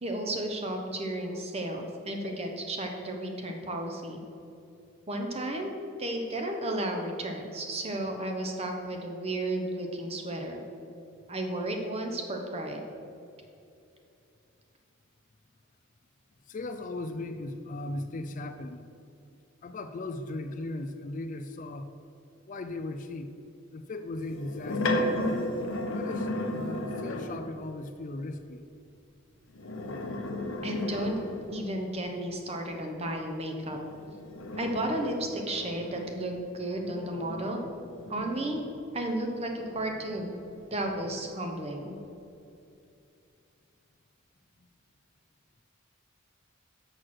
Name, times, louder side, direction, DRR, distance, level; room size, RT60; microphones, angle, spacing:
voice 1, 0.0-4.2 5.1-10.6 11.3-12.8 30.6-31.1 31.5-33.8 34.6-37.6 38.1-38.6 38.9-40.3 40.7-42.0, right 1 dB, 30° right, 3 dB, 0.9 m, -33 dB
voice 2, 16.5-18.9 19.6-21.9 22.5-23.3 23.7-25.1 25.9-28.6 44.6-44.7, left 2 dB, 40° left, 8 dB, 0.4 m, -37 dB
sound 1, 24.2-27.6 29.5-31.8 33.8-39.0 39.5-41.3, left 1 dB, 75° left, 0.8 m, -35 dB
6.4 x 6.2 x 6.0 m, 2.7 s
head